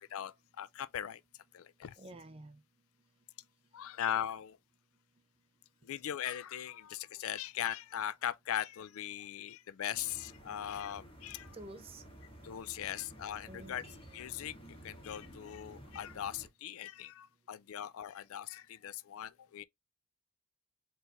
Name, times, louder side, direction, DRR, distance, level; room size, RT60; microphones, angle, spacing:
voice 1, 0.1-1.2 1.5-1.9 3.7-4.6 5.8-11.5 12.4-13.8 14.1-14.5 14.8-19.6, left 10 dB, 65° left, 0.3 m, -39 dB
voice 2, 2.0-2.6 11.5-12.0 13.5-13.8, right 2 dB, 25° right, 0.5 m, -49 dB
sound 1, 9.9-16.5, equal, 25° left, 1.8 m, -53 dB
4.5 x 4.1 x 2.5 m
head